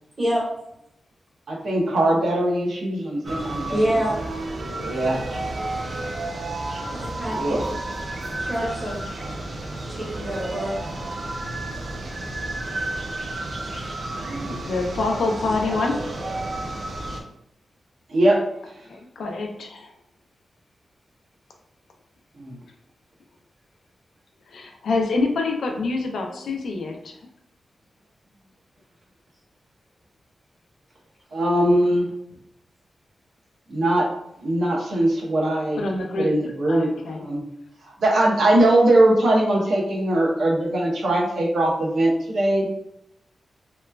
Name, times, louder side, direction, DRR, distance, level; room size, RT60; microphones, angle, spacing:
voice 1, 1.5-4.0 4.8-5.3 7.3-7.7 14.2-14.6 18.1-18.4 22.4-22.6 31.3-32.1 33.7-34.1 34.4-35.8 36.1-36.9 37.2-37.4 37.8-42.6, right 1 dB, 75° right, -2 dB, 0.7 m, -21 dB
sound 1, 3.2-17.2, right 2 dB, 45° right, 0.4 m, -31 dB
voice 2, 3.7-4.1 6.8-7.6 8.4-9.0 9.8-10.7 15.1-16.4 36.7-36.8, equal, 30° right, -6 dB, 0.8 m, -27 dB
voice 3, 14.7-16.0 18.9-19.9 24.5-27.2 35.8-36.4 36.7-37.2, left 3 dB, 90° left, 2 dB, 0.4 m, -26 dB
2.9 x 2.3 x 2.2 m, 0.79 s
wide cardioid pair, 140°, 0 cm